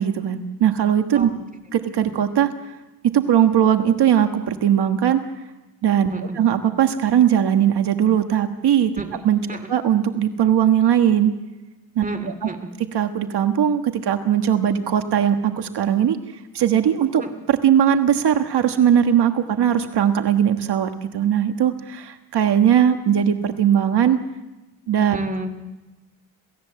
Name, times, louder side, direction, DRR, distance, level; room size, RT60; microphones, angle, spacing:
voice 1, 0.0-1.3 1.7-2.5 3.0-5.2 5.8-6.1 6.4-8.9 9.2-9.4 9.7-11.3 11.9-12.0 12.9-16.2 16.5-17.2 17.5-24.2 24.9-25.2, right 9 dB, 75° right, 6 dB, 1.4 m, -19 dB
voice 2, 6.1-6.4 9.0-9.2 9.5-9.7 12.0-12.7 17.2-17.3 25.1-25.5, right 2 dB, 20° right, 7 dB, 2.4 m, -31 dB
28.0 x 17.0 x 7.5 m, 1.1 s
wide cardioid pair, 150°, 40 cm